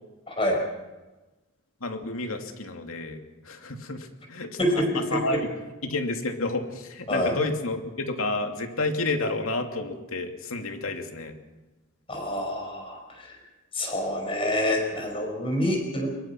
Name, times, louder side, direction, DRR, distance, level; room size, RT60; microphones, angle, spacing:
voice 1, 0.3-0.6 4.6-5.4 7.1-7.3 12.1-13.4 13.7-16.1, left 1 dB, 25° left, 1 dB, 5.7 m, -27 dB
voice 2, 1.8-3.2 3.4-4.5 4.9-5.5 5.8-11.3, left 2 dB, 85° left, 4 dB, 2.7 m, -30 dB
23.0 x 22.0 x 6.0 m, 1.1 s
head